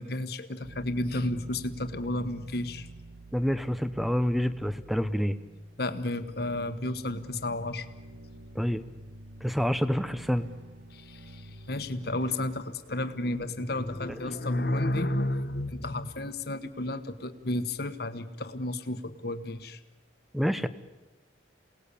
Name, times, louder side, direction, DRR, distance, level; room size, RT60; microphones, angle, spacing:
voice 1, 0.0-2.9 5.8-7.9 10.9-19.8, left 1 dB, 55° left, 9 dB, 1.4 m, -32 dB
sound 1, 0.6-18.0, right 1 dB, 85° right, 1.4 m, -49 dB
voice 2, 3.3-5.4 8.5-8.8 9.4-10.5 20.3-20.7, equal, ahead, 13 dB, 0.8 m, -27 dB
27.5 x 19.0 x 8.4 m, 1.1 s
head